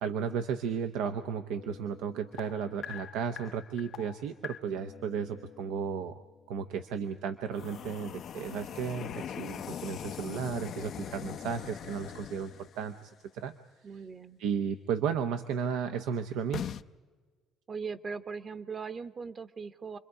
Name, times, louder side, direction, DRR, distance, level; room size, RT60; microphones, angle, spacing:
voice 1, 0.0-6.2 6.5-13.5 14.4-16.6, right 7 dB, 85° right, 7 dB, 0.8 m, -34 dB
sound 1, 1.5-6.2 7.5-13.0 16.5-16.8, left 9 dB, 55° left, 0.5 m, -42 dB
voice 2, 13.8-14.4 17.7-20.0, right 5 dB, 40° right, 12 dB, 1.0 m, -39 dB
28.0 x 22.0 x 4.9 m, 1.4 s
cardioid pair, 100°, 0 cm